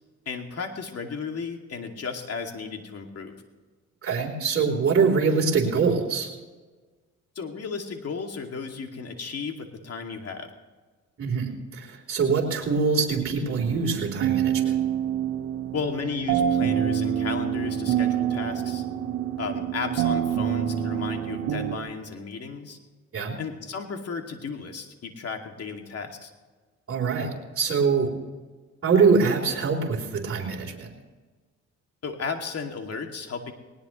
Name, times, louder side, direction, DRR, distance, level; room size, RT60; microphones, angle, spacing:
voice 1, 0.3-3.3 7.4-10.5 15.7-18.8 19.4-22.8 23.4-26.3 32.0-33.5, left 5 dB, 55° left, 3 dB, 2.5 m, -34 dB
voice 2, 4.0-6.3 11.2-14.7 23.1-23.3 26.9-27.3 27.6-28.1 28.8-30.9, right 5 dB, 45° right, -3 dB, 3.9 m, -24 dB
sound 1, 13.6-21.8, right 9 dB, 85° right, 1.4 m, -26 dB
19.5 x 19.5 x 3.2 m, 1.4 s
cardioid pair, 90°, 30 cm